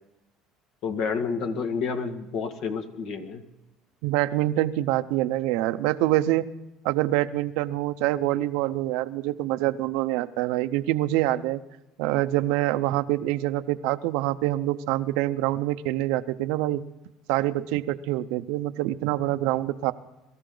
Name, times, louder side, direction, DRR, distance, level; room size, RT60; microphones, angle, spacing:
voice 1, 0.8-3.4, left 5 dB, 65° left, 7 dB, 1.9 m, -29 dB
voice 2, 4.0-6.5 6.8-11.6 12.0-16.8 17.3-19.9, right 15 dB, 80° right, 13 dB, 0.7 m, -25 dB
23.0 x 14.0 x 3.9 m, 0.95 s
supercardioid pair, 110°, 0 cm